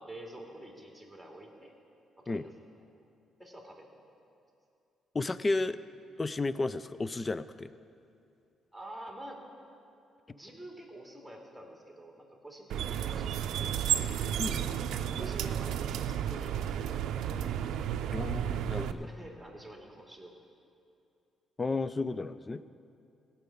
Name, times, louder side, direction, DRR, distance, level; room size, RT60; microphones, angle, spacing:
voice 1, 0.0-1.7 2.2-2.4 3.4-3.9 8.7-9.4 10.3-13.9 14.7-14.8 15.1-17.0 19.0-20.3, right 1 dB, ahead, 0 dB, 2.4 m, -47 dB
voice 2, 5.1-5.8 6.2-7.7 14.4-14.6 18.1-19.1 21.6-22.6, left 3 dB, 25° left, 15 dB, 0.4 m, -32 dB
sound 1, 12.7-18.9, right 10 dB, 85° right, 0.5 m, -32 dB
16.5 x 5.8 x 8.5 m, 2.6 s
cardioid pair, 90°, 0 cm